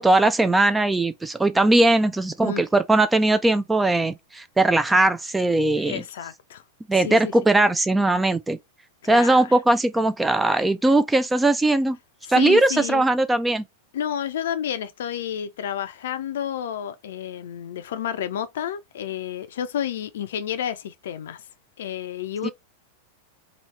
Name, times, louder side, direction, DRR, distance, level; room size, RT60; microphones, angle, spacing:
voice 1, 0.0-6.0 6.9-8.6 9.0-12.0 12.3-13.6 22.4-22.5, right 2 dB, 10° right, 0.3 m, -20 dB
voice 2, 5.8-6.6 7.0-7.3 9.0-9.4 12.2-13.0 13.9-21.4 21.8-22.5, left 9 dB, 60° left, 0.5 m, -30 dB
3.0 x 2.7 x 3.1 m
figure-of-eight pair, 90°, 0 cm